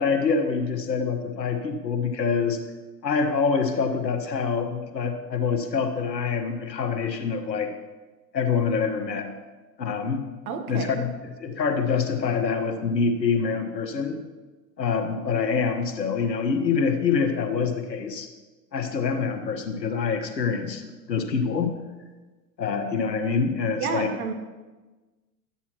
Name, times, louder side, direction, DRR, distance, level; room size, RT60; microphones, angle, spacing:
voice 1, 0.0-2.6 3.0-7.7 8.3-9.3 9.8-10.2 10.7-11.1 11.4-14.2 14.8-18.3 18.7-21.8 22.6-24.1, left 5 dB, 85° left, 5 dB, 1.2 m, -25 dB
voice 2, 10.5-11.0 23.8-24.3, right 5 dB, 60° right, 5 dB, 1.5 m, -30 dB
12.0 x 8.3 x 3.0 m, 1.2 s
hypercardioid pair, 95°, 49 cm